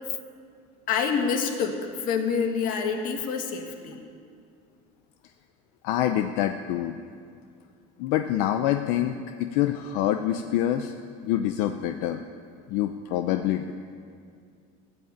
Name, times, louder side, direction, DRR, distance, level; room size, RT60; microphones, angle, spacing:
voice 1, 0.9-4.0, left 6 dB, 55° left, 4 dB, 1.9 m, -27 dB
voice 2, 5.8-7.0 8.0-10.9 11.2-12.2 12.7-13.7, left 12 dB, 80° left, 7 dB, 0.7 m, -26 dB
15.5 x 9.8 x 8.7 m, 2.3 s
cardioid pair, 145°, 17 cm